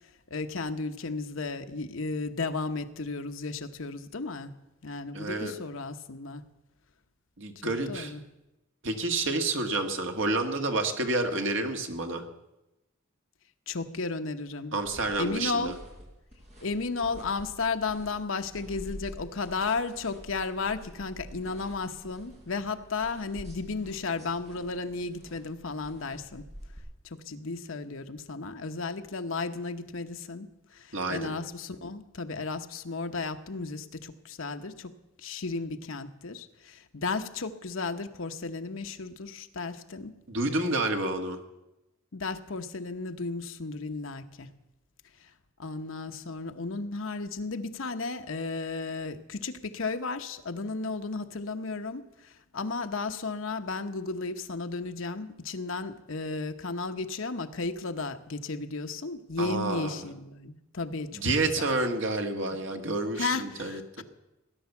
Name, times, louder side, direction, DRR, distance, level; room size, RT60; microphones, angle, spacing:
voice 1, 0.3-4.5 4.8-6.4 7.6-8.2 13.7-14.7 15.2-15.7 16.6-26.5 27.0-34.9 35.2-40.1 42.1-44.5 45.2-45.3 45.6-61.7 63.2-64.0, left 3 dB, 70° left, 8 dB, 1.0 m, -34 dB
voice 2, 5.1-5.5 7.4-8.1 8.8-12.2 14.7-15.7 30.9-31.3 40.3-41.4 59.4-60.0 61.1-64.0, right 2 dB, 65° right, 5 dB, 1.7 m, -29 dB
sound 1, 14.8-26.8, equal, 35° right, 5.0 m, -48 dB
17.5 x 10.5 x 7.1 m, 0.95 s
head